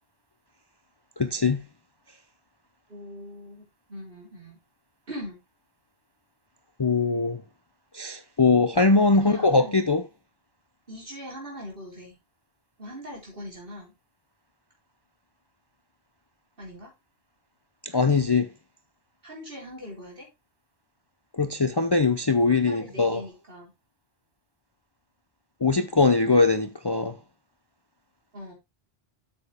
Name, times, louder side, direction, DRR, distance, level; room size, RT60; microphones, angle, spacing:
voice 1, 1.2-1.6 6.8-7.4 7.9-10.0 17.8-18.5 21.3-23.2 25.6-27.2, left 3 dB, 30° left, 0.6 m, -21 dB
voice 2, 2.9-4.6 5.1-5.4 9.1-9.8 10.9-12.1 12.8-13.9 16.6-16.9 17.9-18.0 19.2-20.3 22.5-23.7 28.3-28.5, equal, 60° right, 4.1 m, -41 dB
8.4 x 7.1 x 3.4 m
omnidirectional pair, 1.0 m